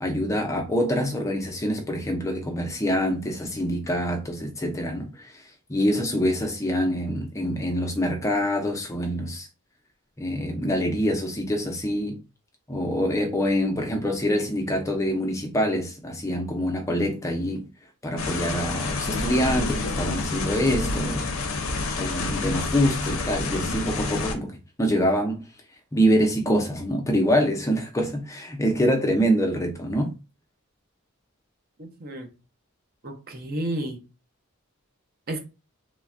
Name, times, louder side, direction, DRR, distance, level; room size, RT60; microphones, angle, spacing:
voice 1, 0.0-5.4 5.7-9.5 10.2-12.2 12.7-17.7 18.0-21.3 21.9-25.4 25.9-30.1, equal, 15° left, 0.4 m, -25 dB
sound 1, 18.2-24.3, left 3 dB, 70° left, 0.5 m, -28 dB
voice 2, 31.8-32.3 33.0-34.0 35.3-35.4, right 1 dB, 45° right, 0.6 m, -31 dB
3.2 x 2.1 x 2.4 m
head